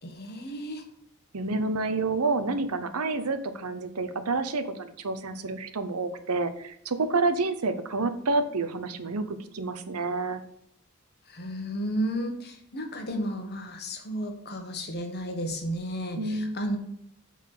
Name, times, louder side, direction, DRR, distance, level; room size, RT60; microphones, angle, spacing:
voice 1, 0.0-0.8 11.3-16.8, equal, 45° left, 4 dB, 1.4 m, -33 dB
voice 2, 1.3-10.4 16.2-16.6, right 3 dB, 80° right, 11 dB, 0.8 m, -29 dB
8.3 x 4.2 x 6.6 m, 0.70 s
head